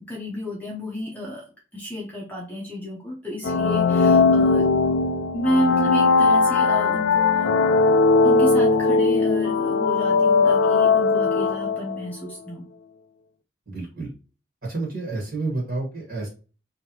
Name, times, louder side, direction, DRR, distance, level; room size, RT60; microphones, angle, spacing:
voice 1, 0.1-1.4 1.7-4.7 5.3-7.6 8.2-12.6, left 1 dB, 10° left, -4 dB, 0.7 m, -30 dB
sound 1, 3.4-12.1, left 4 dB, 70° left, 0.4 m, -19 dB
voice 2, 13.7-14.1 14.6-16.3, right 3 dB, 50° right, -3 dB, 1.4 m, -29 dB
3.2 x 2.8 x 2.7 m, 0.36 s
head